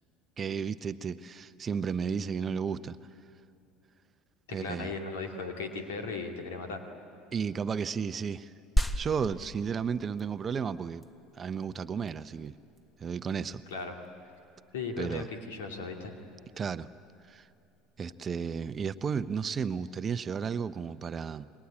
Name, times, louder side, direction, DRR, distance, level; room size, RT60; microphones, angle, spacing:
voice 1, 0.4-3.0 4.5-4.9 7.3-8.5 8.9-11.0 11.3-12.5 13.0-13.6 15.0-15.3 16.6-16.9 17.2-17.5 18.0-21.5, right 6 dB, 35° right, 13 dB, 0.7 m, -33 dB
voice 2, 4.5-6.8 13.7-14.0 14.7-16.2, left 4 dB, 75° left, 3 dB, 2.6 m, -37 dB
sound 1, 8.8-18.7, equal, 10° left, 1.6 m, -38 dB
28.5 x 22.5 x 8.7 m, 2.6 s
hypercardioid pair, 70°, 0 cm